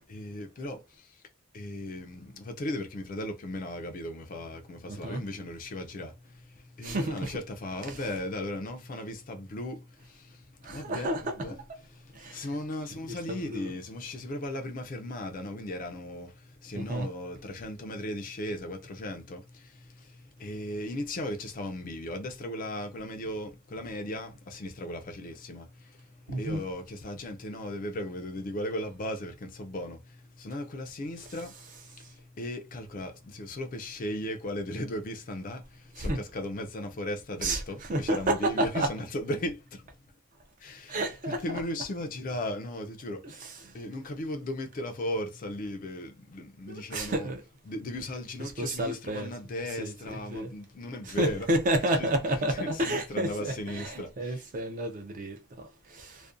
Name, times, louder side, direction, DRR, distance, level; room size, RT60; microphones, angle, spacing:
voice 1, 0.1-1.2 1.5-11.6 11.9-39.9 40.6-47.3 47.7-51.5 52.0-52.1 52.5-54.4, left 1 dB, 40° left, 0.4 m, -37 dB
voice 2, 4.9-5.2 6.8-7.4 7.9-8.0 10.6-11.3 12.2-12.4 13.1-13.7 16.8-17.1 26.3-26.6 36.0-36.2 37.4-38.9 40.9-41.6 43.2-43.7 46.7-47.4 48.4-49.3 49.8-50.5 51.0-55.4 55.9-56.2, right 1 dB, 35° right, 0.4 m, -31 dB
2.5 x 2.1 x 2.4 m
head